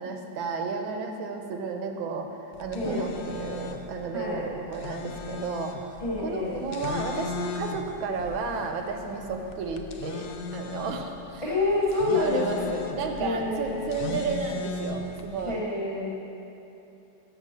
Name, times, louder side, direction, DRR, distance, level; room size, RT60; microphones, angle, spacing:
voice 1, 0.0-2.3 2.6-6.0 6.2-11.4 12.1-15.6, right 4 dB, 85° right, 4 dB, 1.5 m, -32 dB
sound 1, 2.5-15.5, left 5 dB, 75° left, 1.0 m, -38 dB
voice 2, 4.1-4.5 6.0-6.6 11.4-12.7 13.2-14.2 15.4-16.1, left 2 dB, 20° left, -5 dB, 1.1 m, -28 dB
6.5 x 6.5 x 6.4 m, 2.9 s
omnidirectional pair, 2.1 m